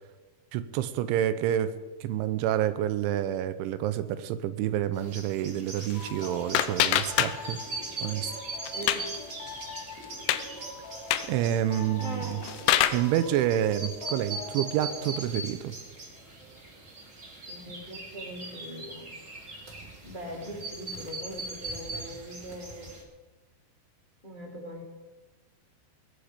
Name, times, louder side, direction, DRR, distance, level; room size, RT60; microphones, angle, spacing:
voice 1, 0.5-1.7 2.0-7.6 8.0-8.3 11.3-12.4 12.9-15.8, right 11 dB, 85° right, 12 dB, 3.0 m, -28 dB
sound 1, 4.9-23.0, right 2 dB, 30° right, 1.5 m, -41 dB
sound 2, 5.8-7.8 8.1-9.2 9.6-9.7 10.0-10.4 11.0-11.4 12.1-13.1, left 12 dB, 90° left, 3.1 m, -27 dB
sound 3, 5.9-15.2, left 4 dB, 50° left, 2.8 m, -44 dB
voice 2, 8.7-9.1 12.0-12.6 17.5-19.1 20.0-23.0 24.2-24.8, equal, 15° left, -2 dB, 1.6 m, -41 dB
20.0 x 10.0 x 5.0 m, 1.3 s
omnidirectional pair, 5.6 m